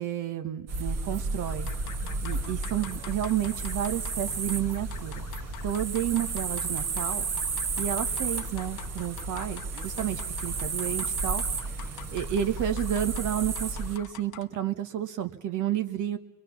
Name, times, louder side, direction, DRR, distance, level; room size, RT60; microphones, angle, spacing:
voice 1, 0.0-1.7 2.2-5.1 5.6-7.3 7.8-11.4 12.1-16.2, right 11 dB, 85° right, 9 dB, 1.3 m, -31 dB
sound 1, 0.7-14.0, right 4 dB, 55° right, 1.5 m, -32 dB
sound 2, 1.5-14.6, left 11 dB, 85° left, 0.8 m, -46 dB
23.0 x 22.0 x 7.1 m, 1.1 s
cardioid pair, 90°, 30 cm